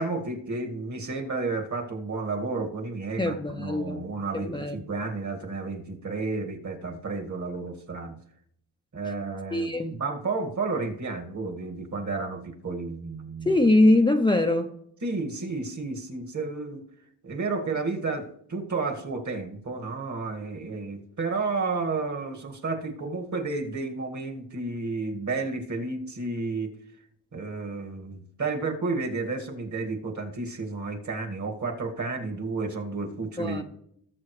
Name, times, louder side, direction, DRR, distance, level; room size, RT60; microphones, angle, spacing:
voice 1, 0.0-8.2 8.9-13.5 15.0-16.8 17.2-26.7 27.3-33.6, right 3 dB, 40° right, 1.9 m, -31 dB
voice 2, 3.2-4.0 4.3-4.8 9.5-10.0 13.4-14.7 33.4-33.6, left 2 dB, 10° left, 0.6 m, -22 dB
18.0 x 7.3 x 3.2 m
cardioid pair, 90°, 43 cm